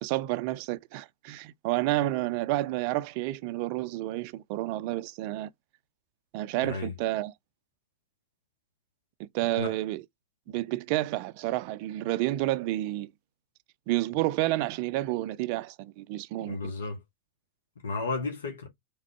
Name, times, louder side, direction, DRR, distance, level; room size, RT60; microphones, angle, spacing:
voice 1, 0.0-5.5 6.3-7.3 9.2-10.1 10.5-13.1 13.9-16.7, right 16 dB, 45° right, 0.4 m, -30 dB
voice 2, 16.4-17.0 17.8-18.7, left 3 dB, 70° left, 1.3 m, -33 dB
3.7 x 3.6 x 3.3 m
figure-of-eight pair, 90°, 0 cm